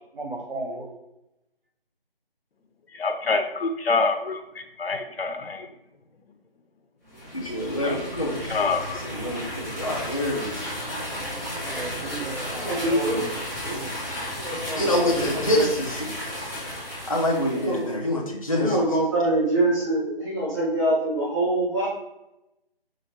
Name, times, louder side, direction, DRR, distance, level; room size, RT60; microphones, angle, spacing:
voice 1, 0.1-1.0 11.6-13.4 13.7-13.9, right 2 dB, 65° right, 2 dB, 1.1 m, -34 dB
voice 2, 2.9-5.7 7.9-8.0 8.4-9.0, left 4 dB, 80° left, 7 dB, 0.6 m, -26 dB
sound 1, 7.1-17.9, equal, 15° right, 1.1 m, -34 dB
voice 3, 7.3-8.4 9.0-10.7 14.7-16.2 17.1-18.8, left 1 dB, 35° left, -3 dB, 0.5 m, -26 dB
voice 4, 12.5-13.2 13.6-13.8 14.4-15.6 17.5-17.9 18.6-21.9, right 1 dB, 30° right, -12 dB, 1.4 m, -25 dB
5.0 x 3.0 x 2.9 m, 0.89 s
figure-of-eight pair, 180°, 30 cm